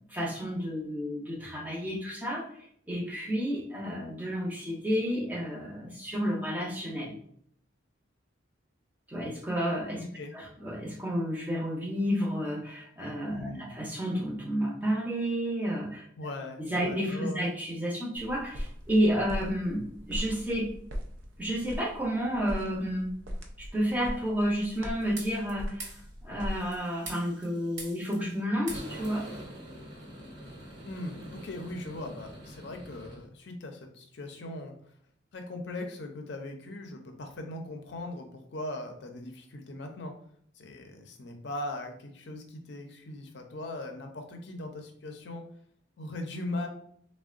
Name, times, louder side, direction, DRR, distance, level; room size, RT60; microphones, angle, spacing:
voice 1, 0.1-7.2 9.1-10.0 10.3-16.1 16.6-20.7 21.4-23.1 23.6-29.3, equal, 10° right, -1 dB, 0.5 m, -31 dB
voice 2, 10.0-10.3 13.3-13.7 16.2-17.4 30.8-34.7 35.3-40.1 40.6-45.4 46.0-46.7, left 1 dB, 60° left, 4 dB, 0.5 m, -39 dB
sound 1, 18.1-26.8, equal, 85° right, 0.5 m, -40 dB
sound 2, 24.7-25.5 25.8-26.0 26.5-28.4 28.7-33.3, right 1 dB, 65° right, 1.1 m, -44 dB
3.5 x 2.1 x 2.4 m, 0.64 s
head